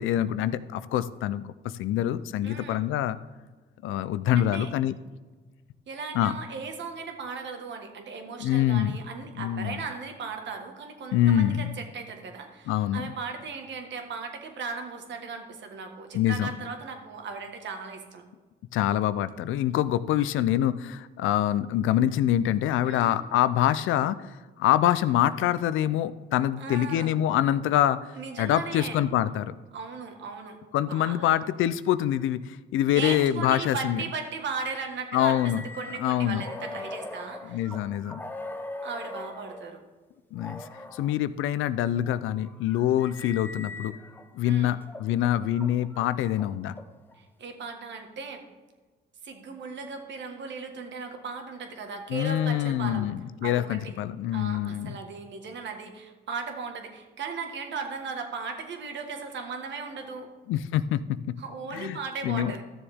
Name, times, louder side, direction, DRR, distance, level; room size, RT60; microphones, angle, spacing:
voice 1, 0.0-1.5 1.8-3.2 3.8-4.9 6.1-6.3 8.4-9.0 9.3-9.8 11.1-11.7 12.7-13.1 16.1-16.5 18.7-24.2 24.6-28.0 28.4-29.5 30.7-34.0 35.1-35.6 36.0-36.4 37.4-38.2 40.3-40.6 40.9-44.0 44.3-46.7 52.1-55.0 60.5-61.3 61.7-62.0 62.2-62.5, left 12 dB, 85° left, 15 dB, 0.5 m, -25 dB
voice 2, 2.4-2.8 4.3-4.7 5.9-18.2 22.8-23.2 26.6-27.2 28.1-29.0 29.7-30.6 30.9-31.4 32.9-37.6 38.8-39.8 44.4-44.8 47.2-48.4 49.2-53.1 53.4-54.0 54.3-60.3 61.4-62.6, right 5 dB, 65° right, 5 dB, 1.6 m, -37 dB
sound 1, 35.1-39.7 40.4-41.1 41.9-44.3 44.8-47.2, left 2 dB, 10° left, 0.7 m, -41 dB
13.5 x 7.0 x 3.6 m, 1.3 s
cardioid pair, 90°, 20 cm